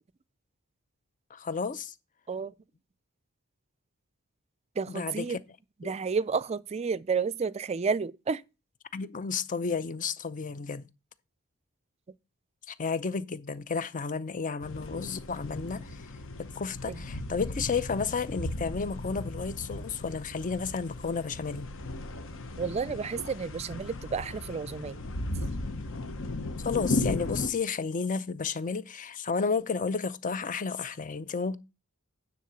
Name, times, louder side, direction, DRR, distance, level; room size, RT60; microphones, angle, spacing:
voice 1, 1.3-1.9 4.9-5.4 5.8-6.0 8.9-10.9 12.7-16.1 16.4-21.7 26.6-31.6, left 5 dB, 35° left, 0.5 m, -32 dB
voice 2, 4.8-5.4 5.8-8.4 16.9-17.0 22.6-25.0, right 5 dB, 30° right, 0.4 m, -31 dB
sound 1, 14.6-27.5, left 2 dB, 60° left, 1.0 m, -36 dB
9.4 x 4.0 x 6.8 m
head